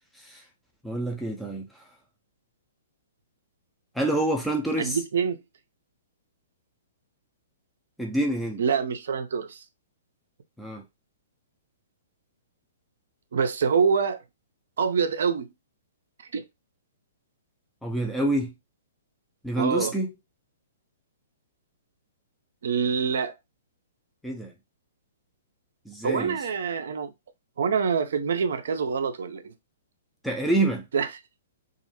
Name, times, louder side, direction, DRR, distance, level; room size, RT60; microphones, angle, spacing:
voice 1, 0.8-1.8 3.9-5.0 8.0-8.6 10.6-10.8 17.8-18.5 19.4-20.1 24.2-24.5 25.9-26.4 30.2-30.8, right 1 dB, ahead, 0.5 m, -27 dB
voice 2, 4.8-5.4 8.6-9.6 13.3-14.2 14.8-15.5 16.3-16.4 19.6-19.9 22.6-23.3 26.0-27.1 27.6-29.5 30.9-31.1, right 6 dB, 65° right, 0.5 m, -25 dB
2.3 x 2.0 x 2.9 m
figure-of-eight pair, 120°, 0 cm